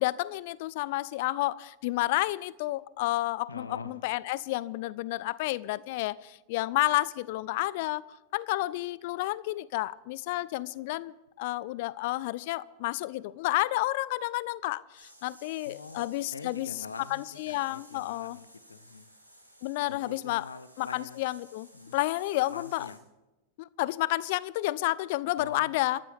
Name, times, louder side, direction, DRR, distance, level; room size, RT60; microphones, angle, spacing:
voice 1, 0.0-8.0 8.3-16.7 17.1-18.4 19.6-20.5 20.8-22.9 23.6-26.0, left 18 dB, 50° left, 0.5 m, -30 dB
voice 2, 3.5-3.9 15.6-19.1 19.9-21.2 21.7-22.0 22.5-23.0 25.4-25.7, left 4 dB, 75° left, 0.8 m, -44 dB
sound 1, 15.0-23.0, equal, 90° right, 5.6 m, -56 dB
28.5 x 14.0 x 3.5 m
figure-of-eight pair, 90°, 0 cm